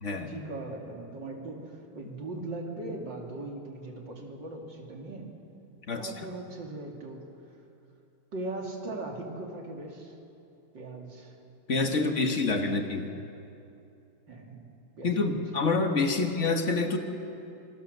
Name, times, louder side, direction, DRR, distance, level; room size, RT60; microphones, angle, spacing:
voice 1, 0.2-5.3 5.9-7.3 8.3-10.1 10.7-11.4 11.9-12.8 14.3-14.7 15.0-15.8 16.2-16.3, right 2 dB, 60° right, 1 dB, 3.3 m, -39 dB
voice 2, 11.7-13.1 15.0-17.0, left 3 dB, 40° left, 5 dB, 1.7 m, -27 dB
27.0 x 20.5 x 6.7 m, 2.7 s
omnidirectional pair, 2.2 m